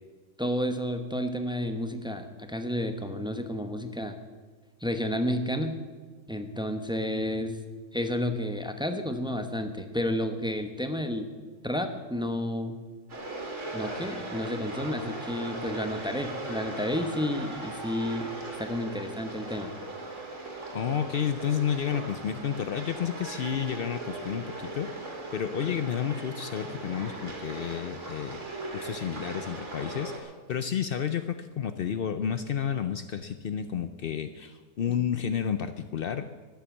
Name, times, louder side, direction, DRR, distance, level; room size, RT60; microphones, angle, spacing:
voice 1, 0.4-4.2 4.8-5.8 6.3-7.6 7.9-11.3 11.6-12.8 13.7-18.3 18.6-19.7, left 1 dB, 5° right, 7 dB, 0.6 m, -31 dB
sound 1, 13.1-30.2, right 2 dB, 50° right, 2.8 m, -39 dB
voice 2, 20.7-24.9 25.3-28.4 28.7-36.3, left 8 dB, 80° left, 10 dB, 0.5 m, -31 dB
12.5 x 10.5 x 7.2 m, 1.4 s
omnidirectional pair, 1.7 m